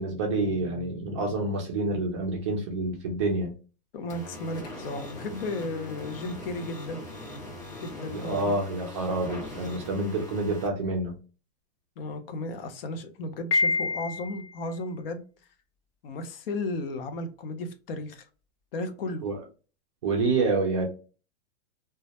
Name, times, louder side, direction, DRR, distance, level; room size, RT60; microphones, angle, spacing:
voice 1, 0.0-3.5 8.1-11.2 19.2-19.4 20.0-20.9, right 2 dB, 30° right, 0.4 m, -28 dB
voice 2, 3.9-7.0 7.8-8.5 12.0-15.2 16.0-18.2 18.7-19.3, left 2 dB, 60° left, 0.6 m, -34 dB
sound 1, 4.1-10.7, left 2 dB, 10° left, 0.6 m, -41 dB
Piano, 13.5-14.5, left 3 dB, 90° left, 1.0 m, -26 dB
2.2 x 2.1 x 2.7 m
supercardioid pair, 175°, 32 cm